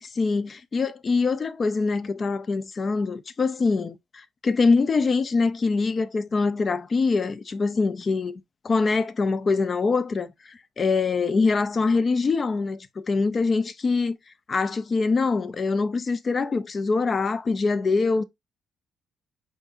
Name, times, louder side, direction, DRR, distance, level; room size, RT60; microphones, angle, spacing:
voice 1, 0.0-14.1 14.5-18.2, left 4 dB, 40° left, 0.5 m, -24 dB
5.1 x 3.8 x 2.5 m
cardioid pair, 90°, 0 cm